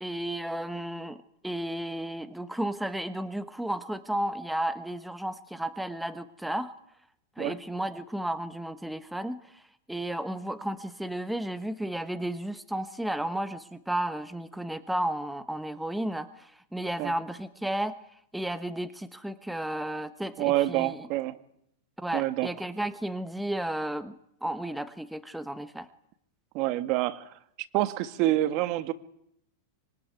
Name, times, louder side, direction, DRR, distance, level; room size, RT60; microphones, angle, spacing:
voice 1, 0.0-6.7 7.4-9.6 9.9-18.0 18.3-21.1 22.0-25.9, right 1 dB, ahead, 11 dB, 1.1 m, -33 dB
voice 2, 20.4-21.4 22.1-22.5 26.5-27.3 27.7-28.9, right 15 dB, 40° right, 12 dB, 1.7 m, -27 dB
25.0 x 24.0 x 9.5 m, 0.72 s
supercardioid pair, 150°, 0 cm